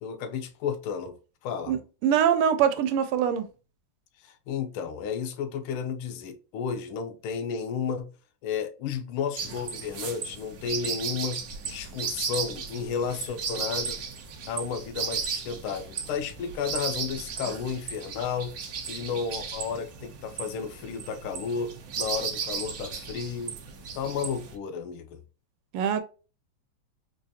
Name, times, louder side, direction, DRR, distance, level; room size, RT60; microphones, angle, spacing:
voice 1, 0.0-1.2 1.4-1.7 4.2-8.1 8.4-14.0 14.5-18.5 18.9-23.6 23.9-25.2, left 6 dB, 80° left, 1.5 m, -32 dB
voice 2, 1.7-3.5 25.7-26.0, right 8 dB, 85° right, 1.5 m, -23 dB
sound 1, 9.4-24.6, right 6 dB, 70° right, 0.8 m, -35 dB
4.5 x 2.4 x 2.6 m
omnidirectional pair, 2.4 m